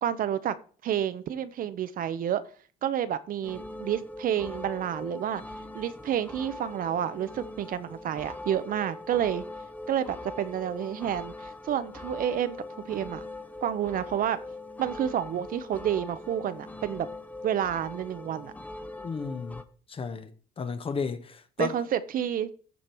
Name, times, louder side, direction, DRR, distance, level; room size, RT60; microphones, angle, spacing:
voice 1, 0.0-0.6 0.8-2.4 2.8-5.4 5.7-9.4 9.9-13.2 13.6-14.4 14.8-17.1 17.4-18.5 21.6-22.5, right 10 dB, 55° right, 0.8 m, -29 dB
sound 1, 3.4-19.6, left 2 dB, 10° left, 0.8 m, -42 dB
voice 2, 19.0-19.6 19.9-20.3 20.6-21.8, left 5 dB, 35° left, 1.0 m, -33 dB
15.0 x 5.2 x 4.5 m
cardioid pair, 110°, 17 cm